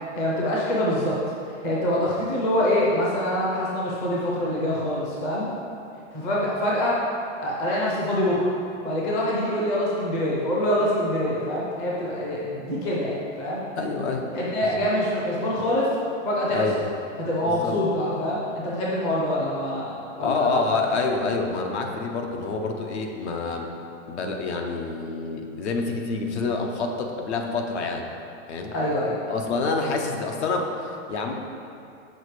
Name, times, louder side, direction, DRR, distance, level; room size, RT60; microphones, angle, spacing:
voice 1, 0.2-1.2 1.6-5.5 6.1-7.0 7.4-8.5 8.8-13.6 14.3-15.9 16.2-16.6 17.2-20.6 28.7-29.1, left 1 dB, 15° left, -5 dB, 0.6 m, -25 dB
voice 2, 13.8-14.3 14.6-14.8 16.5-16.8 17.4-17.8 20.2-23.7 24.1-28.1 28.5-28.7 29.3-31.3, left 3 dB, 55° left, 3 dB, 0.8 m, -27 dB
6.4 x 5.1 x 4.8 m, 2.6 s
supercardioid pair, 175°, 39 cm